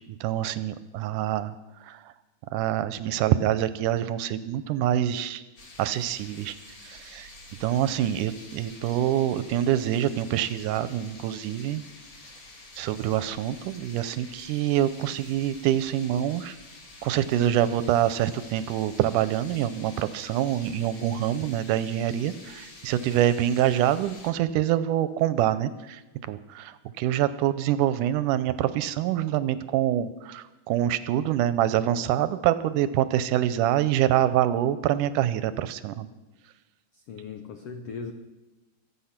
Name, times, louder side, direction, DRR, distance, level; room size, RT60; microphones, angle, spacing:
voice 1, 0.1-1.6 1.8-2.1 2.5-5.4 5.8-6.6 6.8-7.3 7.6-11.8 12.8-16.6 17.0-26.0 26.3-36.1, right 11 dB, 80° right, 14 dB, 2.0 m, -25 dB
sound 1, 5.6-24.3, left 2 dB, 40° left, 2.5 m, -48 dB
voice 2, 36.9-38.1, left 5 dB, 80° left, 7 dB, 1.3 m, -38 dB
24.5 x 8.4 x 5.8 m, 1.1 s
omnidirectional pair, 3.9 m